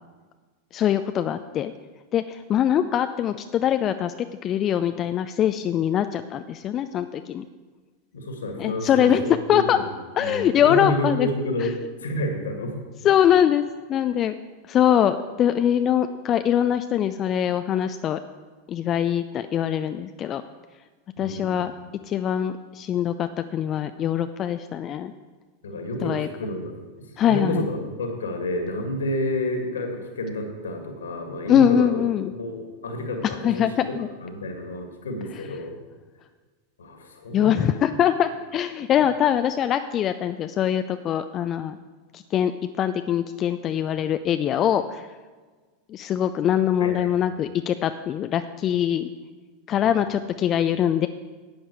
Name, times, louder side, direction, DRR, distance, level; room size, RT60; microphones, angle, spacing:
voice 1, 0.7-1.7 2.1-4.1 4.4-7.4 8.6-9.8 10.2-11.3 11.6-11.7 13.0-13.6 13.9-14.4 14.7-18.2 18.7-20.4 21.2-21.7 22.1-25.1 26.0-26.3 27.2-27.7 31.5-32.3 33.2-34.1 37.3-41.8 42.1-42.5 42.8-45.0 45.9-49.1 49.7-51.1, left 10 dB, 35° left, 10 dB, 0.4 m, -23 dB
voice 2, 8.1-12.8 21.2-21.7 25.6-26.7 27.3-33.9 34.2-35.8 36.8-37.8 46.8-47.3, left 1 dB, 70° left, 4 dB, 2.1 m, -30 dB
11.5 x 8.8 x 4.7 m, 1.4 s
figure-of-eight pair, 85°, 0 cm